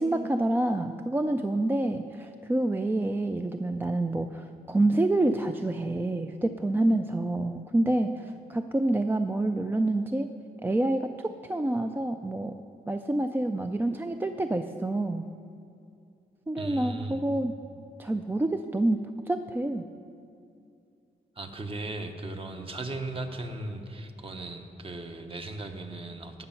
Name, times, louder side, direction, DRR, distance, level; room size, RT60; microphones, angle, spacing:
voice 1, 0.0-10.3 10.6-12.5 12.9-15.2 16.5-17.5 18.0-19.0 19.3-19.9, right 2 dB, 15° right, 7 dB, 0.3 m, -27 dB
voice 2, 16.6-17.2 21.4-26.4, right 2 dB, 35° right, 5 dB, 1.0 m, -37 dB
17.5 x 6.8 x 5.7 m, 2.5 s
wide cardioid pair, 150°, 16 cm